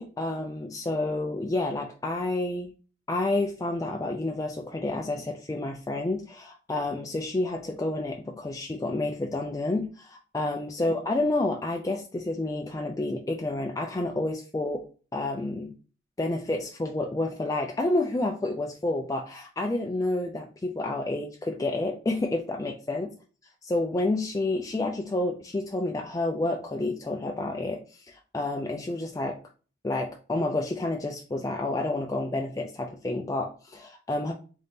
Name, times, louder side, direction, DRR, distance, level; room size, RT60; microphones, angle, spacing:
voice 1, 0.0-2.7 3.1-14.8 15.1-15.7 16.2-23.1 23.6-28.0 28.3-29.4 29.8-34.3, left 2 dB, 20° left, 1 dB, 0.3 m, -29 dB
3.8 x 2.7 x 3.5 m, 0.37 s
head